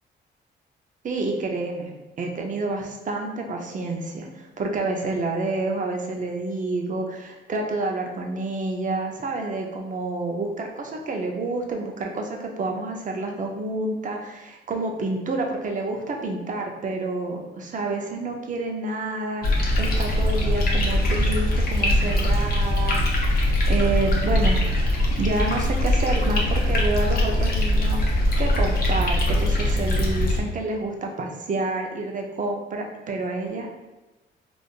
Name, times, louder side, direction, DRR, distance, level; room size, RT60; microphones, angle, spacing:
voice 1, 1.0-23.0 23.7-24.7 25.2-33.8, right 2 dB, 40° right, 2 dB, 0.6 m, -29 dB
sound 1, 19.4-30.4, left 1 dB, 50° left, 0.7 m, -22 dB
3.6 x 2.5 x 2.3 m, 1.1 s
cardioid pair, 90°, 20 cm